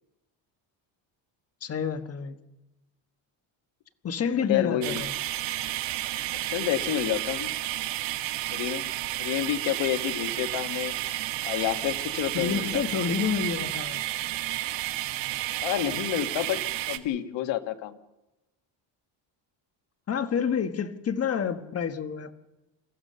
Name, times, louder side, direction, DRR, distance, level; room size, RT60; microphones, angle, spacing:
voice 1, 1.6-2.4 4.0-5.1 12.3-14.0 20.1-22.3, left 7 dB, 30° left, 10 dB, 1.3 m, -28 dB
voice 2, 4.4-5.0 6.5-7.5 8.5-8.9 9.2-10.9 11.4-12.8 15.6-18.0, left 12 dB, 75° left, 9 dB, 1.6 m, -29 dB
sound 1, 4.8-17.0, right 15 dB, 75° right, 1.4 m, -31 dB
29.0 x 15.0 x 6.7 m, 1.0 s
cardioid pair, 145°, 45 cm